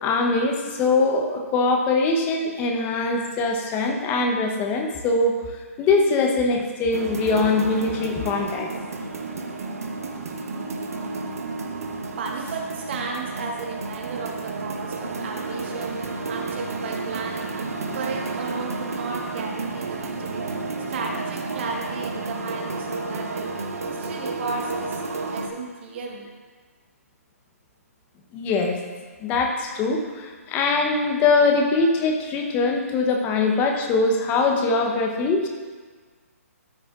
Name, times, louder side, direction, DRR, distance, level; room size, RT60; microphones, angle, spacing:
voice 1, 0.0-8.7 28.3-28.8 29.2-35.5, left 3 dB, 20° left, 2 dB, 0.9 m, -22 dB
sound 1, 6.9-25.5, right 3 dB, 70° right, 1.0 m, -31 dB
voice 2, 11.7-16.0 16.3-17.6 17.9-20.5 20.9-23.6 23.8-25.0 25.3-26.3, right 4 dB, 45° right, 0 dB, 1.5 m, -34 dB
13.5 x 6.1 x 2.5 m, 1.5 s
figure-of-eight pair, 140°, 8 cm